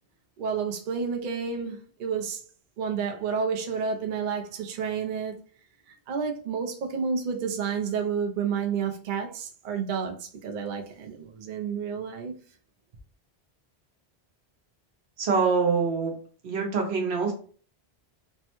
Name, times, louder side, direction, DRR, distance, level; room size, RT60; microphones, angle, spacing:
voice 1, 0.4-2.4 2.8-5.4 6.1-12.3, right 6 dB, 60° right, 0.6 m, -30 dB
voice 2, 15.2-16.1 16.4-17.3, right 5 dB, 80° right, 1.1 m, -24 dB
3.3 x 2.1 x 2.9 m
omnidirectional pair, 1.1 m